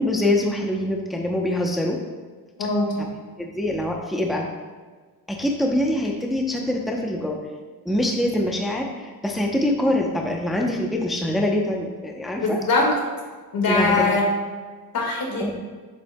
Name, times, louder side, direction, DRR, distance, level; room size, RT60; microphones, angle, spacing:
voice 1, 0.0-2.0 3.4-4.5 5.3-7.4 7.8-12.6 13.7-14.2 15.4-15.5, left 1 dB, ahead, 0 dB, 0.7 m, -24 dB
voice 2, 2.6-3.0 12.4-12.9 13.5-14.3 14.9-15.6, left 3 dB, 65° left, -1 dB, 1.8 m, -21 dB
7.5 x 7.2 x 2.2 m, 1.4 s
cardioid pair, 100°, 37 cm